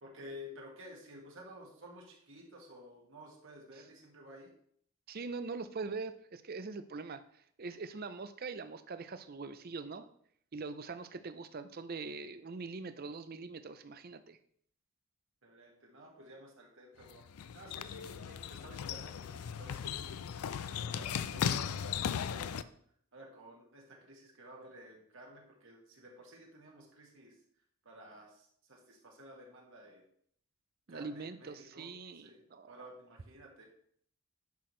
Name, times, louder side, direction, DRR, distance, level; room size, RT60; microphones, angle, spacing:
voice 1, 0.0-4.5 15.4-17.3 17.5-20.2 20.8-22.7 23.1-27.4 27.8-30.0 30.9-32.4 32.7-33.7, equal, 60° right, -1 dB, 2.0 m, -53 dB
voice 2, 5.1-10.1 10.5-14.4 30.9-32.9, right 4 dB, 45° right, 11 dB, 0.5 m, -43 dB
sound 1, 17.0-22.6, left 8 dB, 85° left, 0.4 m, -37 dB
10.5 x 6.0 x 3.2 m, 0.63 s
head